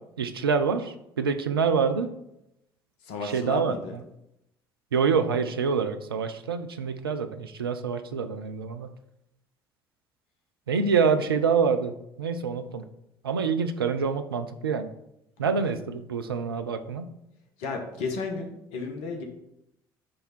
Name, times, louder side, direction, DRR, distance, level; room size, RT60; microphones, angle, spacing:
voice 1, 0.2-2.1 3.2-3.7 4.9-8.9 10.7-12.9 13.2-14.9 15.4-17.1, right 5 dB, 85° right, 8 dB, 0.5 m, -26 dB
voice 2, 3.1-3.9 15.4-15.5 17.6-19.2, left 4 dB, 65° left, 4 dB, 1.3 m, -33 dB
9.9 x 3.5 x 4.3 m, 0.82 s
figure-of-eight pair, 55°, 12 cm